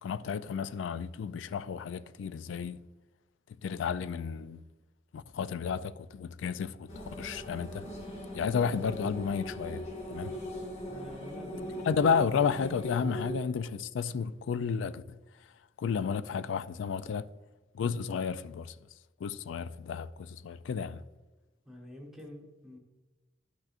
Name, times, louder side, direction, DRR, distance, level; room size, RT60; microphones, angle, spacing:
voice 1, 0.0-2.8 3.6-4.6 5.1-7.9 8.3-10.3 11.9-15.0 15.8-17.3 17.7-18.7 19.2-21.0, left 6 dB, 85° left, 0.3 m, -32 dB
sound 1, 6.9-13.3, equal, 35° left, 1.6 m, -40 dB
voice 2, 10.9-12.1 13.0-13.2 21.6-22.8, equal, ahead, 1.1 m, -48 dB
11.5 x 6.1 x 2.5 m
head